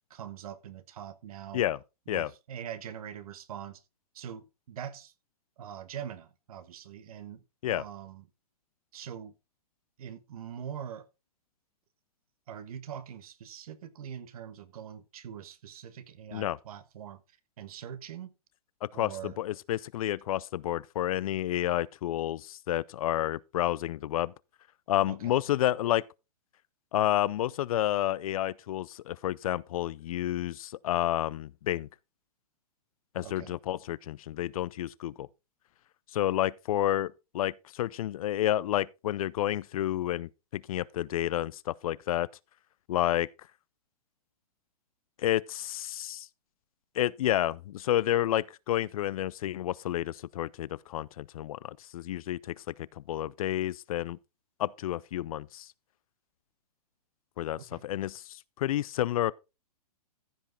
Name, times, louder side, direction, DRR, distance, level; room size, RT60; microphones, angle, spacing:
voice 1, 0.1-1.6 2.1-3.8 4.1-5.1 5.6-7.4 7.7-8.3 8.9-9.3 10.0-11.0 12.5-17.2 17.6-18.3 18.9-19.4 25.1-25.4 33.2-33.5 57.7-57.8, right 9 dB, 65° right, 1.4 m, -43 dB
voice 2, 18.8-24.3 24.9-26.0 26.9-31.9 33.1-35.3 36.1-42.3 42.9-43.3 45.2-46.3 47.0-54.2 54.6-55.7 57.4-59.3, left 13 dB, 60° left, 0.5 m, -30 dB
14.5 x 5.6 x 4.0 m
hypercardioid pair, 135°, 20 cm